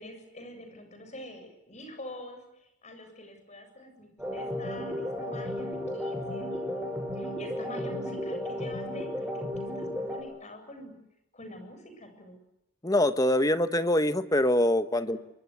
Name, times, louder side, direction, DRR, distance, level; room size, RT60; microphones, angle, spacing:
voice 1, 0.0-10.9 11.3-12.4 15.0-15.2, left 1 dB, 30° left, 6 dB, 7.8 m, -46 dB
sound 1, 4.2-10.2, left 1 dB, 5° right, 7.3 m, -34 dB
voice 2, 12.8-15.2, left 1 dB, 15° left, 11 dB, 1.2 m, -24 dB
27.5 x 25.0 x 8.2 m, 0.82 s
head